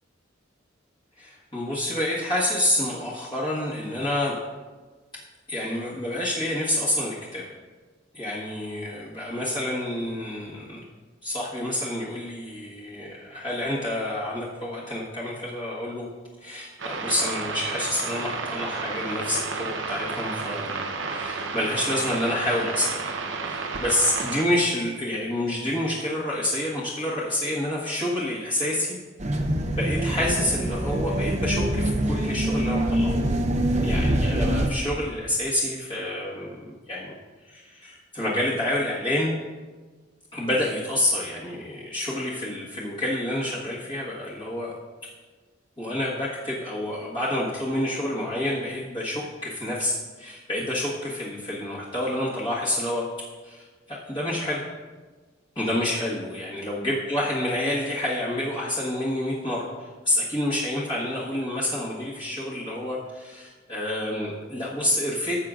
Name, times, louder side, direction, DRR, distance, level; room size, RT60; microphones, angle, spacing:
voice 1, 1.2-4.3 5.5-7.5 8.1-10.8 11.2-16.1 16.4-20.8 21.0-22.9 23.3-29.0 29.7-33.1 33.8-36.5 36.9-37.1 37.5-39.3 40.3-44.7 45.8-53.0 53.4-54.6 55.5-65.4, left 1 dB, 25° left, -8 dB, 1.5 m, -28 dB
sound 1, 16.8-24.4, right 4 dB, 85° right, 0.9 m, -31 dB
sound 2, 29.2-34.7, right 1 dB, 40° right, 0.8 m, -24 dB
16.0 x 7.7 x 2.5 m, 1.3 s
head